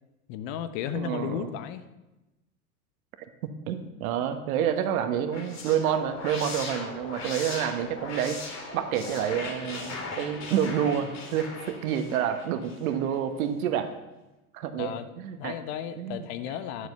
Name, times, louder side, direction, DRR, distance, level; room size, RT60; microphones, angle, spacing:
voice 1, 0.3-1.8 14.8-15.1 15.4-16.9, left 9 dB, 55° left, 11 dB, 1.1 m, -34 dB
voice 2, 0.9-1.6 3.7-8.4 8.7-13.9 14.5-15.5 16.0-16.6, right 9 dB, 65° right, 9 dB, 1.4 m, -28 dB
sound 1, 5.1-13.2, left 3 dB, 35° left, 3.2 m, -39 dB
11.0 x 7.3 x 6.7 m, 1.0 s
hypercardioid pair, 90°, 45 cm